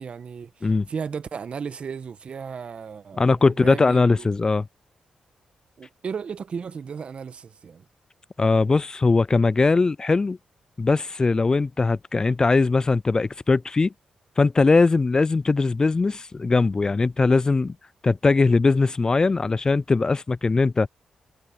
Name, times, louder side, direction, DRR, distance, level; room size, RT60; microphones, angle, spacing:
voice 1, 0.0-4.3 5.8-7.8, right 6 dB, 60° right, 1.4 m, -35 dB
voice 2, 3.2-4.7 8.4-10.4 10.8-13.9 14.4-17.8 18.0-20.9, left 3 dB, 35° left, 0.4 m, -20 dB
supercardioid pair, 50°, 2 cm